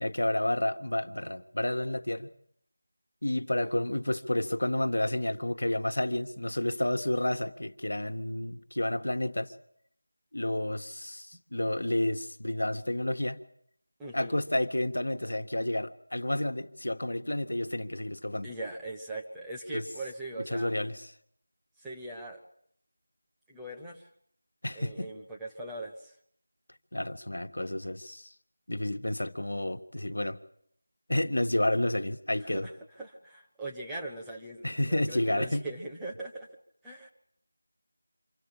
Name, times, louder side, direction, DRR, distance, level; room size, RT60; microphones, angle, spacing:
voice 1, 0.0-2.3 3.2-9.5 10.3-13.4 14.1-18.5 19.7-19.8 20.5-21.1 24.6-25.1 26.9-28.3 28.7-30.4 31.1-32.7 34.6-35.7, left 1 dB, 85° left, 9 dB, 1.3 m, -30 dB
voice 2, 14.0-14.4 18.4-20.7 21.8-22.4 23.5-24.1 24.7-26.2 32.5-32.7 33.0-36.5 36.8-37.1, right 2 dB, 5° right, -3 dB, 1.1 m, -40 dB
25.5 x 14.5 x 8.8 m, 0.68 s
figure-of-eight pair, 175°, 0 cm